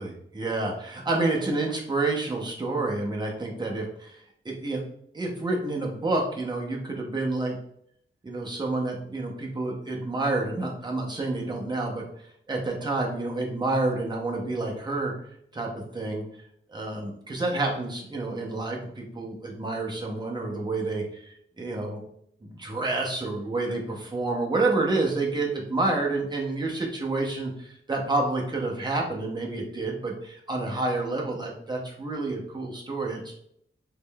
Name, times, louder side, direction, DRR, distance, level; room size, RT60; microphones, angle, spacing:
voice 1, 0.0-4.8 5.1-7.6 8.2-12.1 12.5-15.1 15.5-16.2 16.7-22.0 22.4-33.3, right 2 dB, 20° right, -1 dB, 0.7 m, -29 dB
3.5 x 3.2 x 2.2 m, 0.69 s
wide cardioid pair, 170°, 21 cm